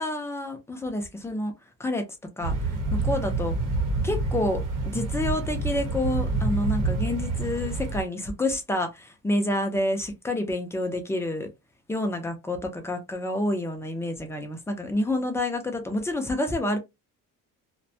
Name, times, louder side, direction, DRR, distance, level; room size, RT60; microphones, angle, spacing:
voice 1, 0.0-1.5 1.8-2.1 2.4-3.5 4.0-11.5 11.9-16.8, left 1 dB, 10° left, 0.4 m, -28 dB
sound 1, 2.4-8.0, right 3 dB, 75° right, 0.8 m, -27 dB
2.5 x 2.1 x 2.6 m
cardioid pair, 160°, 32 cm